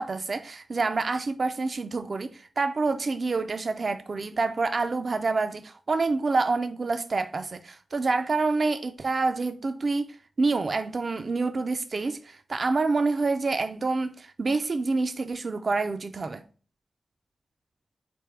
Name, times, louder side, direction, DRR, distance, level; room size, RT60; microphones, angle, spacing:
voice 1, 0.0-16.4, right 3 dB, 55° right, 0.3 m, -27 dB
4.1 x 3.4 x 3.2 m
cardioid pair, 60°, 0 cm